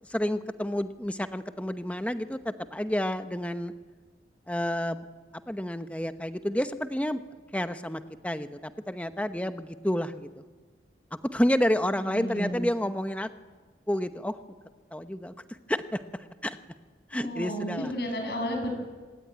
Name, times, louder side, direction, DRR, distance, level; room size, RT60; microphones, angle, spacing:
voice 1, 0.1-3.7 4.5-5.0 5.5-7.2 7.5-10.3 11.3-13.3 13.9-14.3 14.9-15.3 15.7-16.0 16.4-16.6 17.1-17.9, equal, 5° left, 9 dB, 0.9 m, -29 dB
voice 2, 11.9-12.6 17.1-18.7, equal, 60° left, 4 dB, 6.9 m, -32 dB
26.5 x 20.5 x 9.5 m, 1.4 s
head